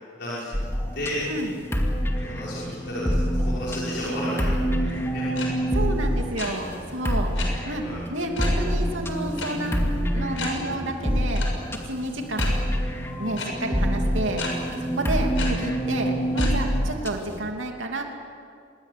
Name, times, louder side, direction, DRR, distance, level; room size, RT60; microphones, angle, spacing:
voice 1, 0.2-0.5 0.9-1.2 2.2-4.5 5.1-5.2 7.8-8.1, left 1 dB, 55° left, -8 dB, 6.0 m, -33 dB
sound 1, 0.5-17.4, equal, 15° left, 2.4 m, -26 dB
sound 2, 5.4-5.5 5.7-5.9 6.2-6.5 7.4-7.5 8.4-8.6 9.4-9.5 9.8-9.9 10.4-10.5 11.4-11.5 12.4-12.5 13.4-13.5 14.4-14.5 15.4-15.5 16.4-16.5, left 5 dB, 90° left, 6.6 m, -32 dB
voice 2, 5.7-7.8 8.1-9.8 10.1-11.6 11.8-12.5 13.2-18.0, right 1 dB, 80° right, 2 dB, 2.8 m, -31 dB
26.5 x 21.5 x 8.4 m, 2.4 s
head